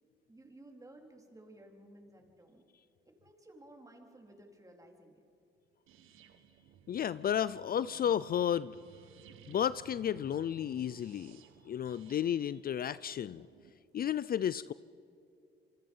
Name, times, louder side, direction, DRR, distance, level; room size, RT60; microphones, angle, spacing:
voice 1, 0.3-2.7 3.1-5.2, right 1 dB, 15° right, 3 dB, 4.1 m, -56 dB
sound 1, 5.9-13.7, right 8 dB, 85° right, 1.4 m, -58 dB
voice 2, 6.9-8.7 9.5-11.4 11.7-13.5 13.9-14.7, left 9 dB, 50° left, 17 dB, 0.5 m, -32 dB
27.5 x 25.0 x 5.6 m, 2.7 s
cardioid pair, 90°, 20 cm